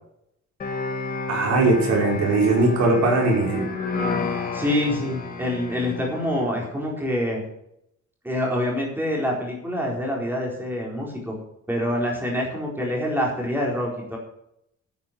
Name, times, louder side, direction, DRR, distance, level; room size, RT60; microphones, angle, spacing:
sound 1, 0.6-6.5, left 3 dB, 30° left, 2.8 m, -30 dB
voice 1, 1.3-3.7, right 2 dB, 70° right, 0 dB, 5.2 m, -20 dB
voice 2, 4.5-7.4 8.2-11.3 11.7-14.2, left 1 dB, 5° right, -2 dB, 4.2 m, -26 dB
11.5 x 9.4 x 6.7 m, 0.77 s
cardioid pair, 180°, 29 cm